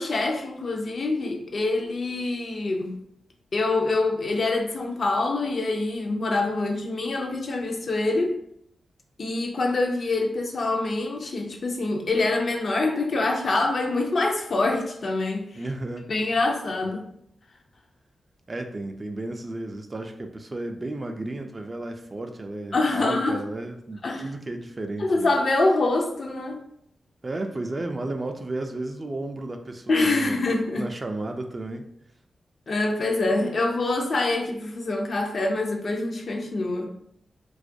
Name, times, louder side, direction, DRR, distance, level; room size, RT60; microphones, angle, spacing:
voice 1, 0.0-2.9 3.5-8.4 9.2-15.6 16.1-17.0 22.7-23.4 24.0-24.2 25.0-26.6 29.9-30.9 32.7-36.9, left 2 dB, 60° left, 2 dB, 0.4 m, -25 dB
voice 2, 15.6-16.1 18.5-25.3 27.2-30.5 30.8-31.9, right 2 dB, 40° right, 5 dB, 0.3 m, -33 dB
2.3 x 2.1 x 2.6 m, 0.72 s
supercardioid pair, 45°, 0 cm